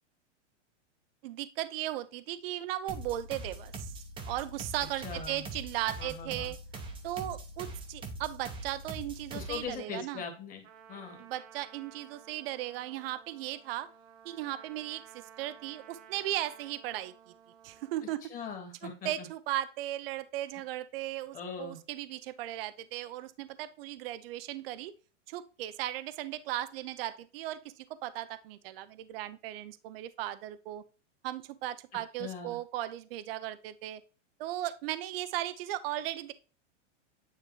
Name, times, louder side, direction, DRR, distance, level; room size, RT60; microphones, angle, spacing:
voice 1, 1.2-3.9 4.2-6.6 7.0-10.2 11.2-13.9 14.2-17.1 17.6-18.3 18.8-24.9 25.3-30.8 31.2-34.0 34.4-36.3, right 14 dB, 50° right, 14 dB, 0.6 m, -37 dB
sound 1, 2.9-9.7, right 2 dB, 15° right, 0.8 m, -43 dB
voice 2, 5.0-5.5 6.0-6.5 9.3-10.6 10.9-11.2 18.3-19.3 21.3-21.8 31.9-32.6, left 5 dB, 20° left, 2 dB, 1.8 m, -41 dB
Trumpet, 10.6-18.0, right 8 dB, 85° right, 0.9 m, -55 dB
9.2 x 3.5 x 3.1 m, 0.35 s
supercardioid pair, 150°, 37 cm